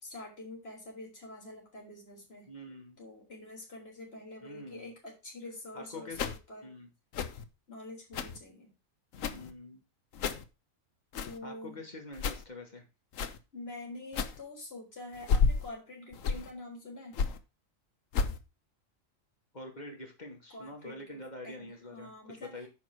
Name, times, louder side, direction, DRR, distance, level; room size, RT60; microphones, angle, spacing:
voice 1, 0.0-2.5 3.0-6.7 7.7-8.7 11.2-11.8 13.5-17.2 20.5-21.2 21.4-22.7, left 2 dB, 50° left, -1 dB, 4.1 m, -46 dB
voice 2, 2.5-3.0 4.4-4.9 5.7-6.2 6.6-6.9 9.3-9.8 11.4-12.8 19.5-22.7, left 1 dB, 35° left, 3 dB, 2.7 m, -45 dB
sound 1, 6.1-6.4 7.1-7.4 8.1-8.4 9.1-9.5 10.1-10.5 11.1-11.4 12.1-12.4 13.1-13.4 14.1-14.4 15.1-15.7 16.1-16.5 17.1-17.4 18.1-18.4, left 5 dB, 75° left, 1.3 m, -31 dB
9.9 x 4.7 x 6.2 m, 0.29 s
omnidirectional pair, 1.4 m